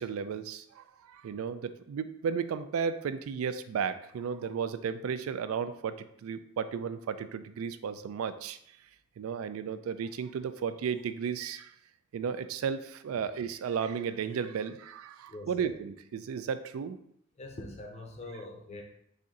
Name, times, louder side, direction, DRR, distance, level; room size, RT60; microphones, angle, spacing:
voice 1, 0.0-8.6 9.2-11.7 12.1-17.0, right 6 dB, 90° right, 12 dB, 0.3 m, -34 dB
voice 2, 15.3-15.7 17.4-18.8, left 2 dB, 30° left, 2 dB, 0.5 m, -43 dB
4.2 x 2.6 x 3.7 m, 0.70 s
head